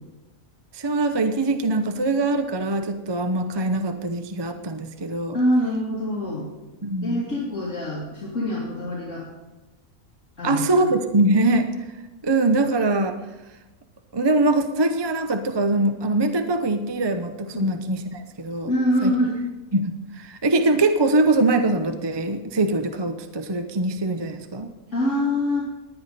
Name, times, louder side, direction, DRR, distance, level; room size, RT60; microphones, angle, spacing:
voice 1, 0.7-5.4 6.8-7.2 10.4-11.7 12.2-13.2 14.1-18.7 19.0-19.1 19.7-24.7, right 2 dB, 25° right, 7 dB, 0.6 m, -22 dB
voice 2, 5.3-6.5 7.0-9.2 10.4-10.9 17.5-17.7 18.6-19.4 24.9-25.6, left 1 dB, 55° left, -7 dB, 3.2 m, -24 dB
19.0 x 10.5 x 4.2 m, 1.1 s
omnidirectional pair, 1.5 m